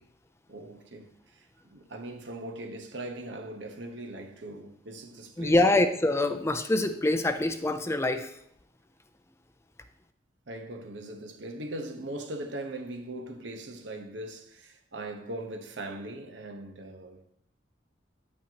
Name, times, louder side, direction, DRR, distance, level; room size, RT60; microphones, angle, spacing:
voice 1, 0.5-5.6 10.5-17.3, right 1 dB, 75° right, 1.1 m, -40 dB
voice 2, 5.4-8.3, left 2 dB, 15° left, 0.4 m, -25 dB
9.1 x 8.6 x 2.9 m
head